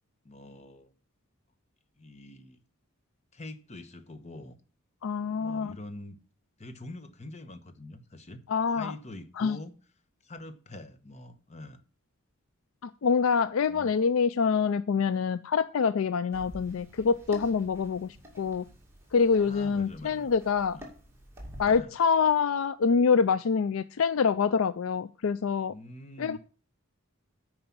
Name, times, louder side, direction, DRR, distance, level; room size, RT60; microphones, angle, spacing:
voice 1, 0.2-0.9 2.0-2.6 3.3-4.6 5.3-6.2 6.6-8.4 8.7-9.7 10.2-11.8 13.7-13.9 19.4-20.3 20.7-20.8 21.6-21.9 25.7-26.4, left 1 dB, 30° left, 9 dB, 1.1 m, -45 dB
voice 2, 5.0-5.8 8.5-8.9 9.4-9.6 12.8-18.7 19.1-20.8 21.6-25.7 26.2-26.4, left 5 dB, 75° left, 15 dB, 0.4 m, -26 dB
sound 1, 16.3-21.8, equal, 10° right, 2.4 m, -48 dB
9.6 x 5.0 x 7.2 m, 0.38 s
head